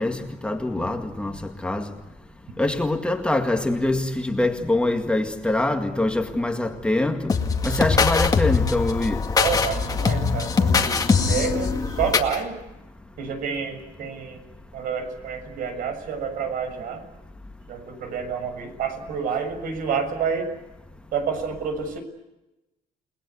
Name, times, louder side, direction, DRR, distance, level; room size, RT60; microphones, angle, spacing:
voice 1, 0.0-1.9 2.6-9.2, left 2 dB, 5° left, 1.9 m, -24 dB
sound 1, 7.3-12.4, left 5 dB, 25° left, 2.2 m, -22 dB
voice 2, 9.4-12.6 13.2-14.4 14.7-17.0 17.7-20.5 21.1-22.0, right 6 dB, 65° right, 6.8 m, -29 dB
30.0 x 20.5 x 8.3 m
cardioid pair, 155°, 15 cm